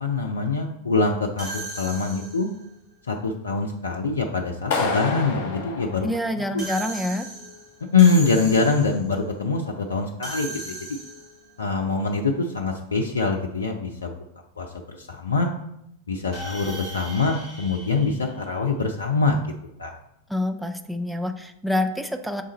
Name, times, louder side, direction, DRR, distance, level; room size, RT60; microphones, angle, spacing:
voice 1, 0.0-2.5 3.1-6.1 6.5-6.6 7.9-10.8 11.6-14.1 14.6-15.5 16.1-19.5 19.8-19.9, left 4 dB, 70° left, 2 dB, 0.5 m, -24 dB
sound 1, 1.4-2.6 6.6-9.1 10.2-11.5 16.3-18.9, right 1 dB, 35° right, 2.0 m, -37 dB
Clapping, 4.7-6.8, left 4 dB, 50° left, 1.2 m, -28 dB
voice 2, 6.0-7.3 20.3-22.4, left 1 dB, ahead, 7 dB, 0.4 m, -27 dB
6.7 x 3.7 x 4.0 m, 0.79 s
figure-of-eight pair, 90°, 0 cm